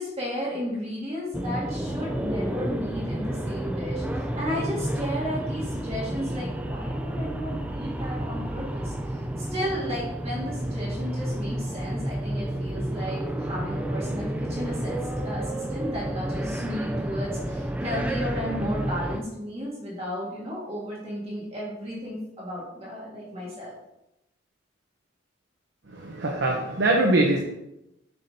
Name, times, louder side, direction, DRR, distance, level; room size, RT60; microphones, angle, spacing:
voice 1, 0.0-15.0 15.2-23.7, equal, 30° right, -6 dB, 1.7 m, -34 dB
sound 1, 1.3-19.2, right 1 dB, 5° right, 0.4 m, -30 dB
voice 2, 25.9-27.4, right 2 dB, 65° right, 1 dB, 0.8 m, -23 dB
6.9 x 5.8 x 2.7 m, 0.88 s
head